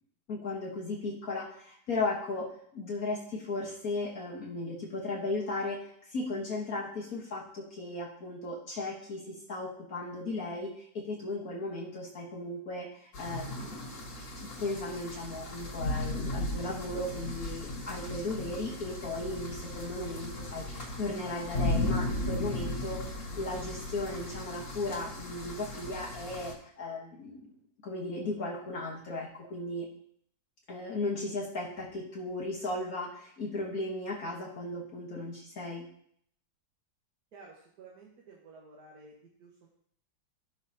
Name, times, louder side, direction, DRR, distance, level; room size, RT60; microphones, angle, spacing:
voice 1, 0.3-14.0 14.4-23.0 23.4-27.5 27.8-29.9 30.7-35.9, left 2 dB, 55° left, -3 dB, 1.7 m, -36 dB
sound 1, 13.1-26.5, left 2 dB, 75° left, 3.0 m, -36 dB
voice 2, 37.3-39.7, right 3 dB, 60° right, -2 dB, 1.8 m, -53 dB
15.0 x 5.9 x 2.8 m, 0.66 s
omnidirectional pair, 2.0 m